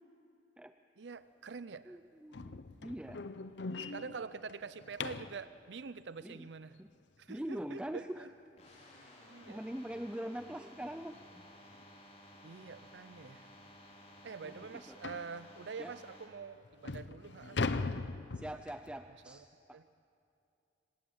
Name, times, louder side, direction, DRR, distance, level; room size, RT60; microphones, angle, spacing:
voice 1, 1.0-2.0 3.8-6.8 7.2-8.3 9.3-9.6 12.4-13.5 14.2-17.6 19.3-19.4 19.7-19.9, right 5 dB, 75° right, 14 dB, 0.6 m, -46 dB
voice 2, 1.9-3.2 6.2-6.5 6.8-6.9 7.3-8.3 9.5-11.5 14.4-15.0 15.8-15.9 18.4-19.8, right 1 dB, 5° right, 8 dB, 0.5 m, -43 dB
sound 1, 2.3-5.4 8.2-8.3 8.8-9.0 9.4-9.5 9.9-10.0 11.1-11.3 11.7-11.8 12.5-12.6 12.9-13.0 13.5-13.6 15.0-15.3 16.1-16.2 16.6-18.9, left 3 dB, 80° left, 0.8 m, -39 dB
sound 2, 8.6-16.3, left 1 dB, 40° left, 5.3 m, -56 dB
26.0 x 17.5 x 8.8 m, 2.6 s
head